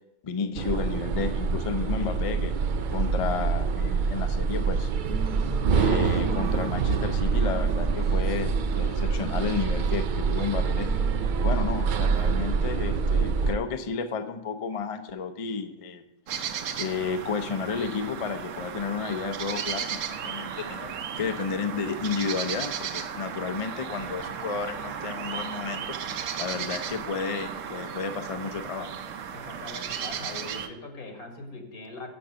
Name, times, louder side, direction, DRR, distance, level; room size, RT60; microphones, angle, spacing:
voice 1, 0.2-4.9 5.7-10.9 11.4-16.0 16.8-26.0 26.4-28.9, left 5 dB, 50° left, 8 dB, 0.4 m, -32 dB
sound 1, 0.6-13.5, right 5 dB, 90° right, 0.4 m, -25 dB
sound 2, 5.0-13.5, right 2 dB, 30° right, 1.1 m, -42 dB
sound 3, 16.3-30.7, right 8 dB, 65° right, 1.0 m, -35 dB
voice 2, 29.3-32.1, left 2 dB, 85° left, 3 dB, 2.1 m, -41 dB
6.7 x 6.5 x 7.5 m, 0.90 s
omnidirectional pair, 1.5 m